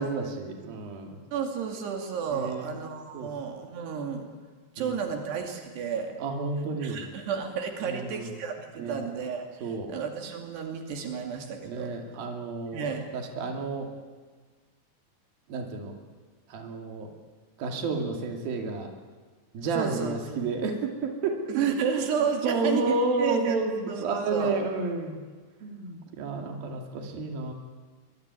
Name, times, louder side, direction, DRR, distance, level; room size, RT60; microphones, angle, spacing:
voice 1, 0.0-1.2 2.3-2.7 3.1-3.3 4.8-4.9 6.2-7.0 7.9-8.3 8.8-9.0 9.6-9.9 11.7-12.8 13.1-13.9 15.5-15.9 16.5-17.1 17.6-18.9 19.5-21.6 22.4-25.2 25.6-27.5, right 3 dB, 65° right, 3 dB, 4.4 m, -31 dB
voice 2, 1.3-4.3 4.8-6.2 6.8-11.9 12.7-13.1 19.7-20.2 21.5-23.6 23.9-24.6, right 6 dB, 85° right, 3 dB, 4.5 m, -31 dB
24.0 x 23.0 x 9.7 m, 1.5 s
omnidirectional pair, 4.7 m